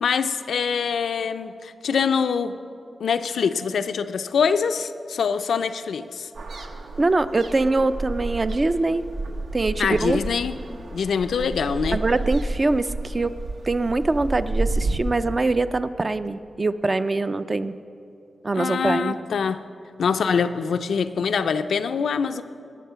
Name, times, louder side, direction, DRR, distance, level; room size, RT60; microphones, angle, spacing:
voice 1, 0.0-2.6 3.0-6.3 9.8-10.6 10.9-12.0 18.5-19.6 20.0-22.4, left 6 dB, 90° left, 9 dB, 0.5 m, -24 dB
sound 1, 6.3-15.0, right 2 dB, 70° right, 1.0 m, -31 dB
voice 2, 7.0-9.0 9.5-10.2 11.9-13.4 13.6-17.7 18.4-19.2, right 2 dB, 30° right, 12 dB, 0.4 m, -23 dB
20.0 x 7.5 x 5.6 m, 2.5 s
wide cardioid pair, 120°, 0 cm